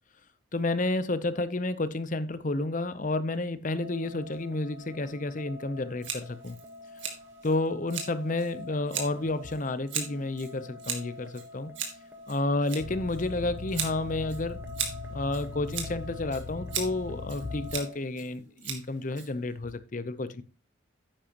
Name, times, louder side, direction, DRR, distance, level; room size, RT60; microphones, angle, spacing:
voice 1, 0.5-6.6 7.4-11.7 12.3-14.6 15.1-20.4, left 2 dB, 40° left, 0.7 m, -31 dB
sound 1, 3.8-17.9, left 2 dB, 10° right, 1.3 m, -47 dB
Scissors, 6.0-19.7, right 7 dB, 70° right, 2.2 m, -39 dB
sound 2, 12.8-17.8, left 4 dB, 75° left, 0.6 m, -41 dB
10.5 x 8.8 x 3.0 m
head